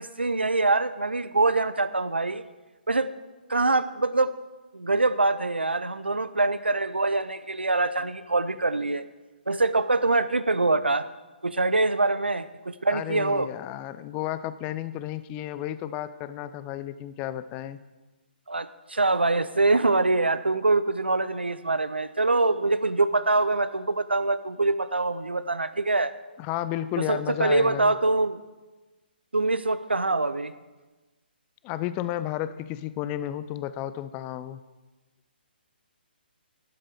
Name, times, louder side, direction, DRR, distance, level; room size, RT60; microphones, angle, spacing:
voice 1, 0.0-2.4 2.9-3.1 3.5-4.3 4.7-9.0 9.5-11.1 11.4-13.5 18.5-26.1 27.1-28.4 29.3-30.5, right 3 dB, 85° right, 14 dB, 0.5 m, -24 dB
voice 2, 12.9-17.8 26.4-28.0 31.6-34.6, left 12 dB, 20° left, 14 dB, 0.5 m, -32 dB
12.0 x 7.5 x 5.1 m, 1.2 s
figure-of-eight pair, 135°, 6 cm